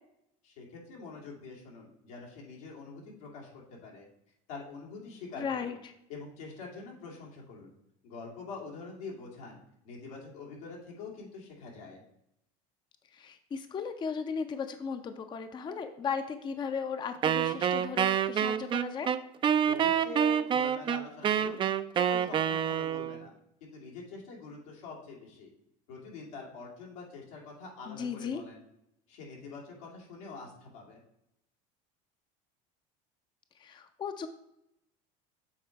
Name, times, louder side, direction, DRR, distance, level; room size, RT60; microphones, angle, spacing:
voice 1, 0.4-4.1 4.5-5.8 6.1-7.7 8.0-9.6 9.8-12.0 19.6-21.6 21.9-23.3 23.6-25.5 25.9-28.6 29.1-31.0, left 4 dB, 90° left, -2 dB, 2.4 m, -45 dB
voice 2, 5.4-5.9 13.1-19.1 27.9-28.4 33.6-34.3, left 6 dB, 25° left, 8 dB, 0.5 m, -36 dB
Wind instrument woodwind instrument, 17.2-23.2, right 9 dB, 30° right, 0.4 m, -27 dB
7.2 x 3.9 x 4.5 m, 0.80 s
supercardioid pair, 110°, 18 cm